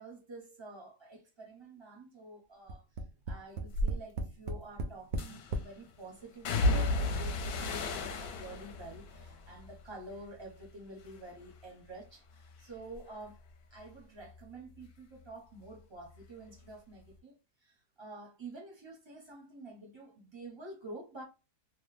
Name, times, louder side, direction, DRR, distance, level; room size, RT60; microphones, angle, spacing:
voice 1, 0.0-2.9 3.3-13.4 13.7-21.2, right 2 dB, 25° right, 0.6 m, -49 dB
Tap, 2.7-5.7 6.5-6.6 6.9-7.0, right 1 dB, 70° right, 0.8 m, -37 dB
sound 1, 3.7-3.9 5.2-5.6 6.5-10.7 11.0-11.6 12.0-15.3 15.6-16.7 17.0-17.1, left 2 dB, 70° left, 1.1 m, -35 dB
3.0 x 2.1 x 3.2 m
omnidirectional pair, 1.8 m